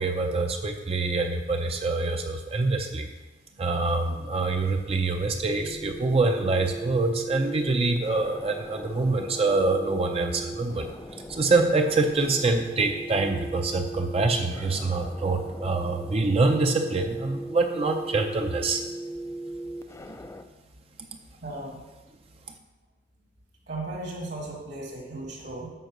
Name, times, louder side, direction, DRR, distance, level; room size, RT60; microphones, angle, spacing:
voice 1, 0.0-3.1 3.6-10.9 11.3-18.8, right 3 dB, 35° right, 4 dB, 0.5 m, -25 dB
sound 1, 4.9-20.4, right 1 dB, 15° left, 0.4 m, -39 dB
voice 2, 21.4-21.8 23.7-25.7, right 2 dB, 60° right, -2 dB, 1.9 m, -36 dB
7.8 x 4.7 x 6.1 m, 1.1 s
head